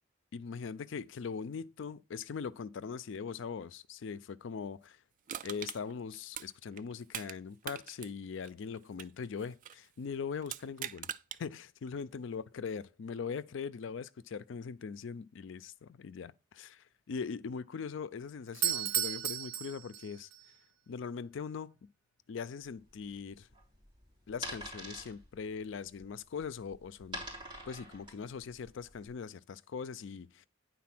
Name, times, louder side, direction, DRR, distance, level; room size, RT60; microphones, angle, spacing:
voice 1, 0.3-5.0 5.4-11.1 11.4-20.3 20.9-21.8 22.3-23.5 24.3-27.3 27.7-30.5, left 6 dB, 65° left, 0.4 m, -41 dB
Crushing, 5.3-7.4 7.6-9.9 10.4-11.4 11.9-12.0, right 10 dB, 40° right, 0.4 m, -43 dB
Doorbell, 18.5-20.4, right 10 dB, 90° right, 0.9 m, -34 dB
sound 1, 22.6-29.1, right 1 dB, 25° right, 3.5 m, -46 dB
9.5 x 4.1 x 5.9 m
head